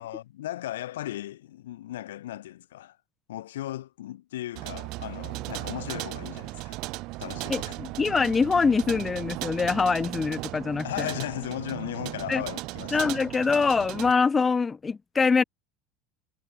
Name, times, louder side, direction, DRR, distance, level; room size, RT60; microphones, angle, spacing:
voice 1, 0.0-3.0 3.3-6.8 7.2-7.8 10.8-13.0, left 14 dB, 85° left, 0.7 m, -36 dB
sound 1, 4.5-14.1, right 22 dB, 60° right, 0.6 m, -36 dB
voice 2, 7.5-11.1 12.3-12.4 12.9-15.4, left 5 dB, 25° left, 0.6 m, -24 dB
hypercardioid pair, 85°, 0 cm